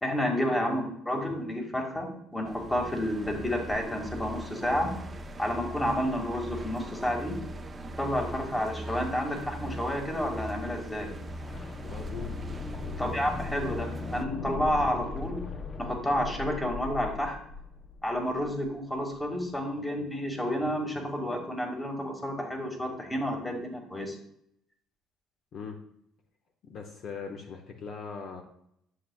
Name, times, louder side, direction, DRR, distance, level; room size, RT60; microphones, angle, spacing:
voice 1, 0.0-4.9 5.4-7.4 8.0-11.1 13.0-15.4 15.8-17.4 18.0-24.2, equal, 10° left, 2 dB, 1.9 m, -30 dB
sound 1, 2.5-14.3, right 1 dB, 20° right, 0.7 m, -40 dB
sound 2, 11.1-18.9 19.1-19.2, left 4 dB, 35° left, 0.8 m, -39 dB
voice 2, 11.9-12.3 12.8-13.2 25.5-25.7 26.7-28.4, left 5 dB, 50° left, 3 dB, 1.3 m, -40 dB
11.5 x 7.8 x 2.3 m, 0.72 s
cardioid pair, 120°, 0 cm